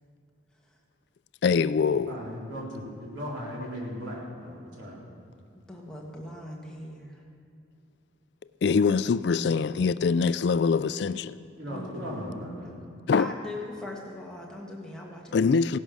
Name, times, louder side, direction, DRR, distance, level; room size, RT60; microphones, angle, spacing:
voice 1, 1.4-2.1 8.6-11.4 13.1-13.3 15.3-15.8, left 5 dB, 55° left, 0.3 m, -23 dB
voice 2, 2.1-5.0 11.6-12.7, equal, 75° right, 4.0 m, -37 dB
voice 3, 5.5-7.3 11.7-12.8 13.2-15.6, left 1 dB, 5° left, 1.6 m, -41 dB
17.0 x 11.0 x 6.3 m
head